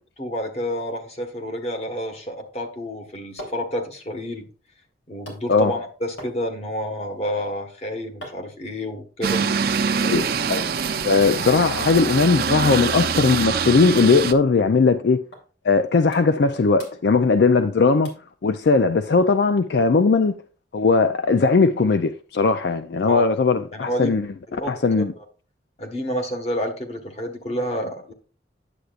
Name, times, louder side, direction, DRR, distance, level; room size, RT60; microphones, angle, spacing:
voice 1, 0.2-4.5 5.1-9.4 23.1-23.2 23.7-24.1 24.5-24.7 25.8-28.1, equal, 35° left, 1.4 m, -29 dB
sound 1, 2.9-10.8 11.1-11.7 12.1-12.3 12.6-12.7 13.0-14.3 14.6-14.7 15.3-15.5 15.8-16.5 16.7-17.7 18.0-18.3 18.8-18.9, equal, 85° left, 3.4 m, -46 dB
sound 2, 9.2-14.3, right 6 dB, 55° right, 0.6 m, -24 dB
voice 2, 10.0-10.7 11.0-15.2 15.6-18.1 18.4-20.4 20.7-24.3 24.7-25.1, left 4 dB, 65° left, 0.4 m, -19 dB
9.9 x 7.9 x 2.4 m
head